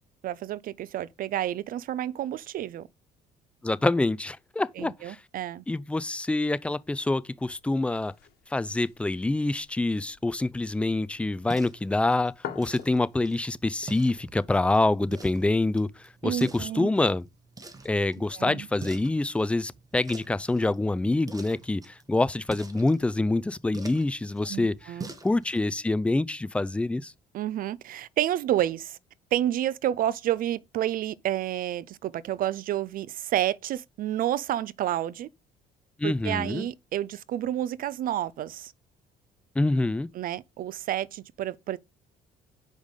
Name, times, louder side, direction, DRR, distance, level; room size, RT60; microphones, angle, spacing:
voice 1, 0.2-2.9 4.8-5.6 16.2-16.9 18.3-18.7 24.5-25.1 27.3-29.0 29.3-35.3 36.0-38.7 40.2-41.8, right 12 dB, 55° right, 0.4 m, -30 dB
voice 2, 3.6-5.2 5.7-8.1 8.5-17.3 17.8-24.9 25.2-27.1 36.0-36.7 39.6-40.1, left 2 dB, 5° left, 0.4 m, -26 dB
sound 1, 6.7-14.5, left 10 dB, 65° left, 1.5 m, -48 dB
sound 2, 10.4-25.7, right 3 dB, 20° right, 1.5 m, -47 dB
5.2 x 5.1 x 6.5 m
cardioid pair, 110°, 17 cm